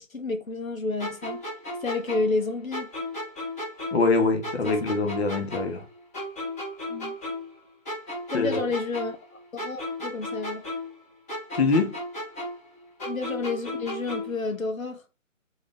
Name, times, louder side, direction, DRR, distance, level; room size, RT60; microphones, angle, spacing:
voice 1, 0.0-1.4 1.8-2.9 4.6-4.8 6.9-7.1 8.3-10.6 13.0-15.0, left 3 dB, 85° left, 1.3 m, -30 dB
sound 1, 1.0-4.2 4.4-7.6 7.9-11.0 11.3-14.4, left 1 dB, 10° left, 1.0 m, -35 dB
voice 2, 3.9-5.8 8.3-8.6 11.5-11.9, left 3 dB, 50° left, 1.0 m, -24 dB
3.9 x 3.3 x 3.4 m
figure-of-eight pair, 155°, 40 cm